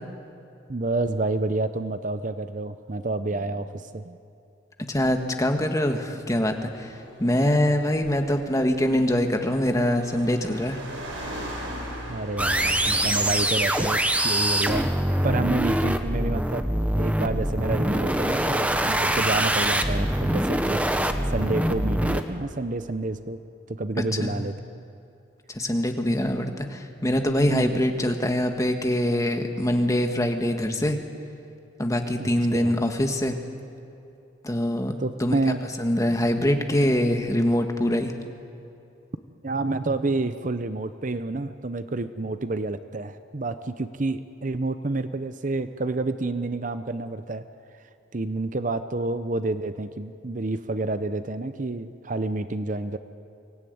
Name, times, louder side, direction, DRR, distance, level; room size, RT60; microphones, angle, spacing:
voice 1, 0.7-4.2 12.1-14.9 15.2-16.6 16.9-20.8 21.3-23.4 23.7-24.8 27.5-27.7 32.2-32.7 35.0-35.6 39.4-47.4 48.1-53.0, right 2 dB, 40° right, 11 dB, 0.7 m, -29 dB
voice 2, 4.9-10.8 24.2-24.4 25.5-31.0 31.8-33.4 34.4-34.9 35.2-35.3 35.8-38.1, left 1 dB, 15° left, 5 dB, 1.5 m, -24 dB
Car, 6.1-14.1, equal, 80° right, 6.8 m, -40 dB
sound 1, 12.4-22.2, right 1 dB, 5° right, 1.0 m, -24 dB
24.0 x 17.5 x 9.5 m, 2.7 s
head